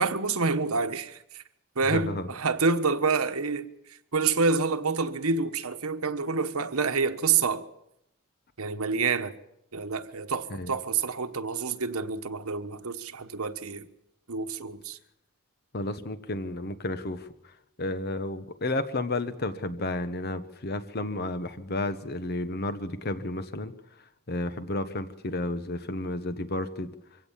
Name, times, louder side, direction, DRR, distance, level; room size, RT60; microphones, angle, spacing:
voice 1, 0.0-1.4 1.8-3.7 4.1-7.6 8.6-9.3 9.7-13.9 14.3-15.0, right 4 dB, 85° right, 1.2 m, -27 dB
voice 2, 1.9-2.3 10.5-10.7 15.7-17.3 17.8-23.7 24.3-26.9, left 2 dB, 45° left, 1.2 m, -32 dB
23.5 x 16.5 x 7.4 m
head